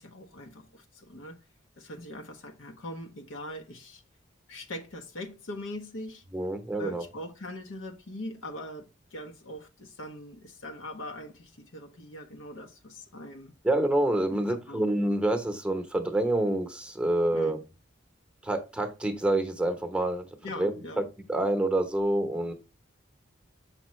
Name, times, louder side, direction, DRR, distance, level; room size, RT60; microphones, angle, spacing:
voice 1, 0.0-1.4 1.8-4.0 4.5-6.2 6.8-13.5 14.3-14.8 17.3-17.6 20.4-21.0, left 1 dB, 90° left, 0.9 m, -41 dB
voice 2, 6.3-7.0 13.6-17.6 18.4-20.3 20.6-20.7 21.3-22.5, right 1 dB, 5° right, 0.8 m, -27 dB
7.2 x 5.3 x 3.1 m
head